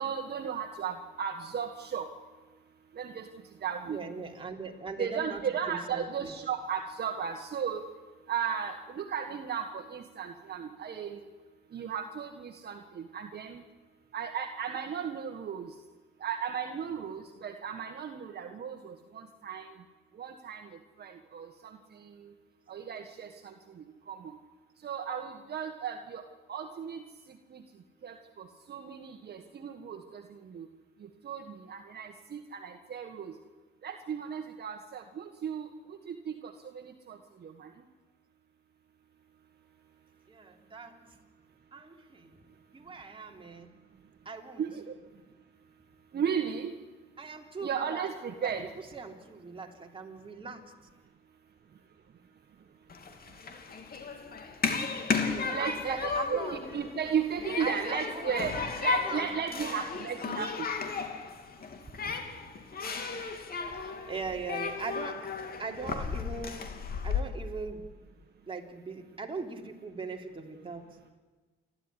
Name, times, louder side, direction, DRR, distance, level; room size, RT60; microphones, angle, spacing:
voice 1, 0.0-2.1 3.0-3.3 3.6-4.0 5.0-7.8 8.3-11.2 11.7-13.6 14.1-15.7 16.2-19.7 20.2-20.7 21.0-22.3 22.7-23.5 24.1-24.3 24.8-26.2 26.5-27.0 27.5-27.6 28.0-30.7 31.2-33.3 33.8-37.7 44.6-45.0 46.1-46.7 47.6-48.7 55.5-60.7, right 7 dB, 55° right, 5 dB, 1.7 m, -35 dB
voice 2, 3.9-5.4 5.7-6.3 40.3-41.1 41.7-42.3 42.7-43.7 44.3-44.7 47.2-48.1 48.4-50.6 55.3-56.7 57.6-58.5 58.9-59.7 63.7-65.2 65.6-66.7 67.0-67.9 68.5-70.9, right 4 dB, 25° right, 1 dB, 3.4 m, -40 dB
Human group actions, 52.9-67.2, left 5 dB, 50° left, 2.9 m, -34 dB
29.0 x 12.5 x 10.0 m, 1.3 s
cardioid pair, 90°, 20 cm